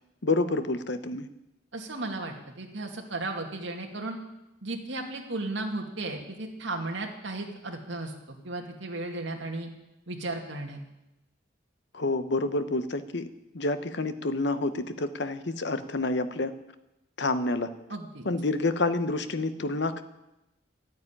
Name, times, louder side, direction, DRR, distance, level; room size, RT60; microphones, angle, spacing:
voice 1, 0.2-1.3 11.9-13.3 13.5-16.5 17.2-17.7 18.2-20.0, left 2 dB, 60° left, 11 dB, 1.0 m, -28 dB
voice 2, 1.7-4.2 4.6-9.7 10.1-10.8 17.9-18.2, right 2 dB, 65° right, 2 dB, 2.4 m, -35 dB
12.5 x 9.3 x 9.9 m, 0.94 s
head